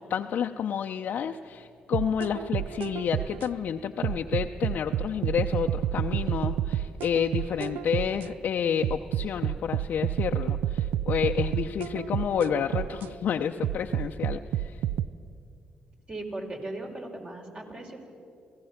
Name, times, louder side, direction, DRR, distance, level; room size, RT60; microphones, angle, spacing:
voice 1, 0.0-14.8, left 8 dB, 65° left, 3 dB, 0.6 m, -30 dB
sound 1, 1.9-3.5 4.0-8.3 8.8-13.1 13.6-15.1, right 11 dB, 80° right, 0.4 m, -29 dB
voice 2, 16.1-18.0, right 2 dB, 35° right, 1 dB, 4.5 m, -37 dB
27.0 x 17.0 x 5.8 m, 2.5 s
supercardioid pair, 55°, 3 cm